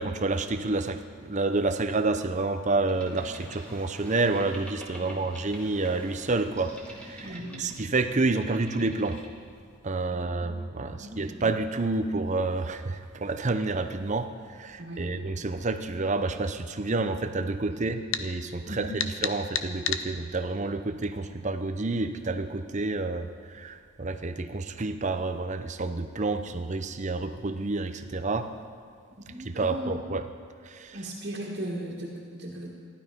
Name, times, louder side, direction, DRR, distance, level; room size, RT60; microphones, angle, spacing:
voice 1, 0.0-9.2 9.8-18.9 19.2-28.5 29.6-30.2 30.7-31.0, right 3 dB, 35° right, 8 dB, 0.7 m, -29 dB
Boat Water vehicle, 2.9-9.8, equal, 5° left, 1.9 m, -46 dB
voice 2, 7.2-7.7 10.1-11.4 14.8-15.2 17.7-17.8 18.7-18.9 29.3-29.9 30.9-32.7, right 1 dB, 50° right, -6 dB, 1.9 m, -38 dB
sound 1, 18.1-18.3 19.0-20.1, left 8 dB, 65° left, 0.7 m, -29 dB
15.5 x 12.0 x 5.3 m, 2.1 s
head